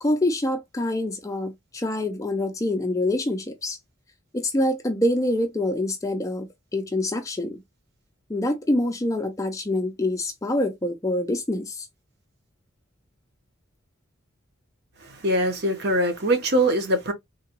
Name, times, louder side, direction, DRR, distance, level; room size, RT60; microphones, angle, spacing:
voice 1, 0.0-3.8 4.3-6.5 6.7-7.6 8.3-11.9, left 1 dB, 15° left, 0.4 m, -25 dB
voice 2, 15.0-17.1, right 1 dB, 50° right, 0.8 m, -23 dB
3.6 x 2.2 x 2.8 m
head